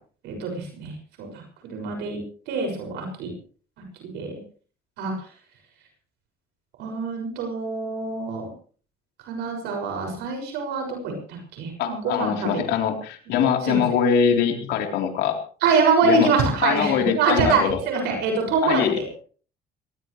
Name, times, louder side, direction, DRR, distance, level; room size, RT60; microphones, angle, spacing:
voice 1, 0.2-1.4 1.7-3.3 3.8-3.9 4.1-4.3 5.0-5.1 6.8-8.5 9.3-12.5 13.3-13.4 13.6-13.8 15.6-19.0, right 4 dB, 90° right, 3 dB, 6.4 m, -25 dB
voice 2, 11.8-15.4 16.0-16.3 16.6-17.8 18.6-19.0, left 7 dB, 85° left, 3 dB, 3.8 m, -23 dB
21.0 x 19.0 x 3.3 m, 0.42 s
cardioid pair, 110°, 17 cm